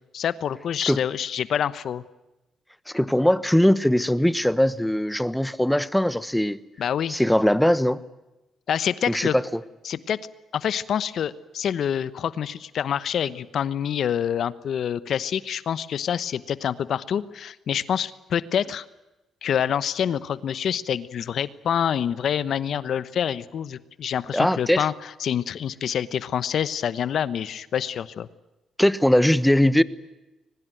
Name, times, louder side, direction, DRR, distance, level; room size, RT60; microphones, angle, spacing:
voice 1, 0.1-2.0 6.8-7.2 8.7-9.3 9.8-10.2 10.5-18.8 19.4-28.3, left 8 dB, 65° left, 16 dB, 1.0 m, -26 dB
voice 2, 2.9-6.6 7.1-8.0 9.1-9.4 24.3-24.9 28.8-29.8, left 1 dB, 5° left, 16 dB, 1.1 m, -20 dB
22.5 x 20.5 x 9.2 m, 1.0 s
cardioid pair, 90°, 0 cm